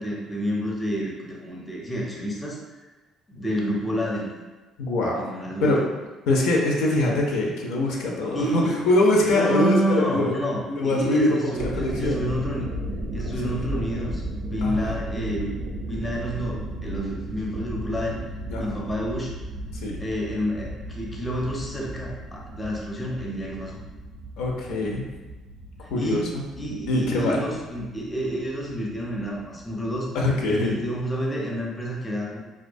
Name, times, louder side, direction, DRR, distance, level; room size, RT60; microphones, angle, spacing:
voice 1, 0.0-2.6 3.3-4.3 5.1-5.7 8.3-8.8 9.2-12.7 13.1-18.2 18.6-19.3 20.0-23.8 24.7-25.1 26.0-30.1 30.5-32.4, equal, 15° left, -3 dB, 0.5 m, -29 dB
voice 2, 4.8-5.2 5.6-5.8 6.3-10.3 10.7-12.2 13.2-13.5 14.6-14.9 18.5-18.8 19.7-20.0 24.4-25.1 25.9-26.4 26.9-27.4 30.1-30.8, left 2 dB, 85° left, -1 dB, 0.4 m, -23 dB
sound 1, 11.5-31.1, right 1 dB, 85° right, 0.5 m, -35 dB
2.3 x 2.2 x 2.5 m, 1.2 s
cardioid pair, 110°, 0 cm